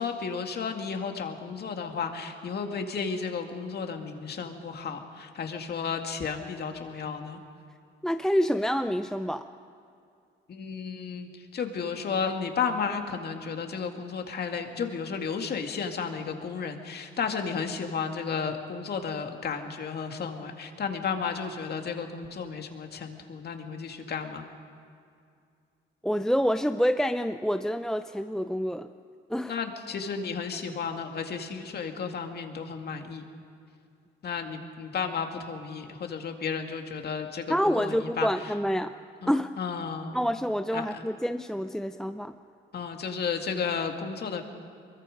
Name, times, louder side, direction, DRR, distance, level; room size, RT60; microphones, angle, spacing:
voice 1, 0.0-7.4 10.5-24.5 29.5-33.2 34.2-38.3 39.2-39.3 39.6-40.2 40.7-40.9 42.7-44.4, left 6 dB, 55° left, 4 dB, 2.2 m, -33 dB
voice 2, 8.0-9.4 26.0-28.9 29.3-29.6 37.5-38.9 39.2-39.5 40.1-42.3, equal, 5° left, 8 dB, 0.6 m, -27 dB
23.5 x 22.5 x 5.2 m, 2.4 s
cardioid pair, 90°, 20 cm